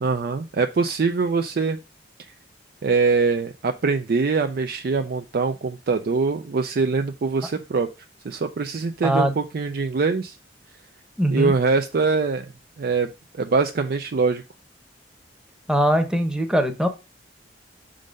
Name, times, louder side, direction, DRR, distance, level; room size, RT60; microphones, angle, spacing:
voice 1, 0.0-1.8 2.8-7.9 8.2-10.4 11.3-12.4 12.8-13.1 13.4-14.4, right 4 dB, 55° right, 7 dB, 0.4 m, -23 dB
voice 2, 11.2-11.5 15.7-16.9, right 1 dB, 5° right, 7 dB, 0.9 m, -21 dB
6.4 x 3.8 x 5.1 m, 0.29 s
head